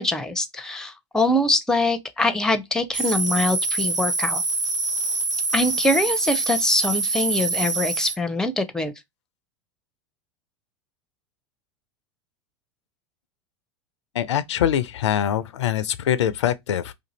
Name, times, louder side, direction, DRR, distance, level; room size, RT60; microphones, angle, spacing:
voice 1, 0.0-4.4 5.5-8.9, left 2 dB, 5° left, 0.5 m, -23 dB
sound 1, 2.9-8.2, right 3 dB, 90° right, 0.7 m, -25 dB
voice 2, 14.2-16.9, left 10 dB, 75° left, 0.4 m, -23 dB
2.6 x 2.5 x 4.0 m
figure-of-eight pair, 85°, 15 cm